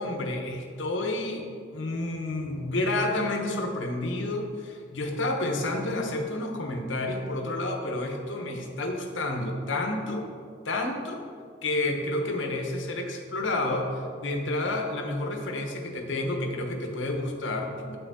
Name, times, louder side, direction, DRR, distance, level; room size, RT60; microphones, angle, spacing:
voice 1, 0.0-1.4 1.7-10.2 10.6-11.2 11.6-13.9 14.2-18.0, left 2 dB, 85° left, 3 dB, 1.0 m, -30 dB
9.0 x 5.8 x 4.2 m, 2.3 s
head